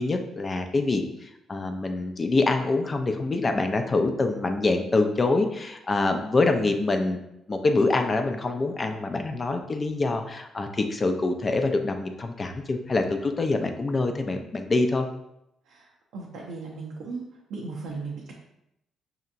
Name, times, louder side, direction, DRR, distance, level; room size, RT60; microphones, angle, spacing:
voice 1, 0.0-7.2 7.5-15.1, left 3 dB, 30° left, 5 dB, 0.5 m, -25 dB
voice 2, 16.1-17.2 17.5-18.3, right 4 dB, 85° right, -3 dB, 0.6 m, -36 dB
5.4 x 2.8 x 2.5 m, 0.82 s
cardioid pair, 90°, 0 cm